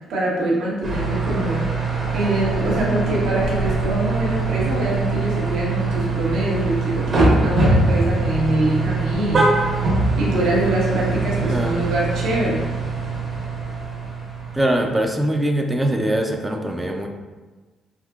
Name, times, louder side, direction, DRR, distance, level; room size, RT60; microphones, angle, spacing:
voice 1, 0.1-9.5 10.2-12.7, right 1 dB, 85° right, -5 dB, 0.9 m, -24 dB
sound 1, 0.8-15.2, right 3 dB, 50° right, 0.8 m, -23 dB
voice 2, 11.2-11.8 14.5-17.1, right 1 dB, 15° right, 3 dB, 0.3 m, -22 dB
3.5 x 2.6 x 2.4 m, 1.3 s
cardioid pair, 90°, 0 cm